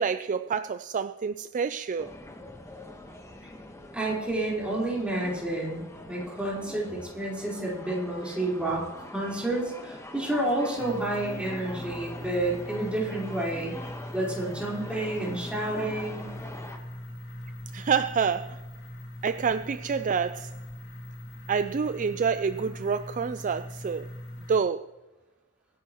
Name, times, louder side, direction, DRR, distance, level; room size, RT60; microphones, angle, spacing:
voice 1, 0.0-2.1 17.7-18.6 19.2-20.5 21.5-24.1 24.5-24.9, right 6 dB, 35° right, 0.4 m, -27 dB
sound 1, 2.0-16.8, left 1 dB, 15° left, 1.2 m, -44 dB
voice 2, 3.9-13.7 14.1-16.3, right 1 dB, 5° right, 4.3 m, -30 dB
sound 2, 10.8-24.6, left 1 dB, 50° left, 1.9 m, -41 dB
24.0 x 10.5 x 3.0 m
head